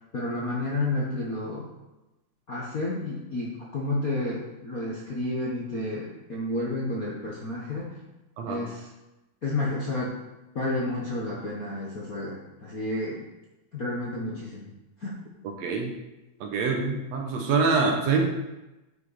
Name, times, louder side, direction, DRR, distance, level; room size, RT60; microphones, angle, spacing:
voice 1, 0.1-1.7 2.5-8.0 8.4-8.9 9.4-10.1 10.5-13.3 13.7-14.7 15.0-15.1, left 2 dB, 65° left, -5 dB, 0.8 m, -31 dB
voice 2, 15.4-15.9 16.4-18.3, right 4 dB, 70° right, 3 dB, 1.8 m, -25 dB
10.5 x 5.6 x 4.1 m, 1.0 s
omnidirectional pair, 3.6 m